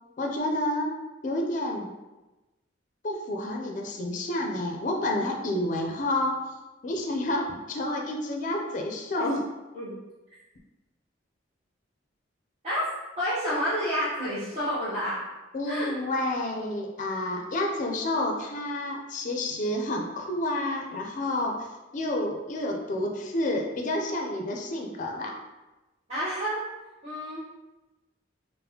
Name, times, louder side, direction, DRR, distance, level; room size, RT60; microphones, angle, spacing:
voice 1, 0.2-0.9 1.2-1.9 3.0-6.4 6.8-9.4 15.5-21.6 21.9-25.3, left 1 dB, 40° left, 1 dB, 0.4 m, -29 dB
voice 2, 13.2-15.2 15.6-15.9 26.1-26.6 27.0-27.4, equal, 35° right, -12 dB, 0.8 m, -29 dB
4.0 x 2.0 x 2.7 m, 1.1 s
head